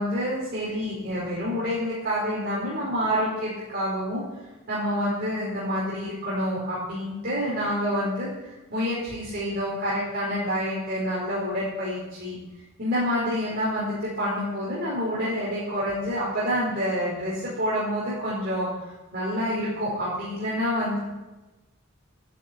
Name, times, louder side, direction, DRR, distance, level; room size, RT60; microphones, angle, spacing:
voice 1, 0.0-4.2 4.7-12.4 12.8-18.7 19.1-21.0, equal, 50° right, -7 dB, 4.8 m, -28 dB
12.0 x 11.0 x 7.7 m, 1.1 s
head